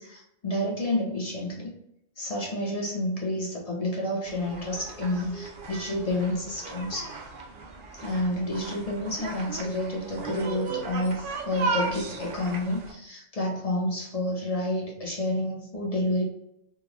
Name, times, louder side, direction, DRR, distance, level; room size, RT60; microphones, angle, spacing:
voice 1, 0.0-1.7 2.2-7.2 7.9-16.2, left 1 dB, 35° left, -2 dB, 0.8 m, -29 dB
sound 1, 4.3-12.9, right 3 dB, 55° right, 0.6 m, -36 dB
3.8 x 2.2 x 2.9 m, 0.78 s
omnidirectional pair, 1.3 m